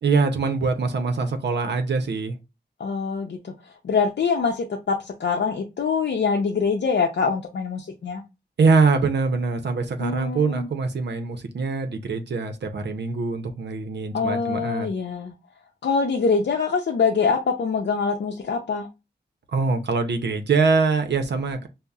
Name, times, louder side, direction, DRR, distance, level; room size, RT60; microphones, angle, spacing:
voice 1, 0.0-2.4 8.6-14.9 19.5-21.7, right 4 dB, 70° right, 0.6 m, -23 dB
voice 2, 2.8-3.4 3.8-8.2 10.0-10.7 14.1-15.3 15.8-18.9, left 5 dB, 70° left, 0.6 m, -24 dB
5.3 x 2.0 x 2.3 m
wide cardioid pair, 80°, 18 cm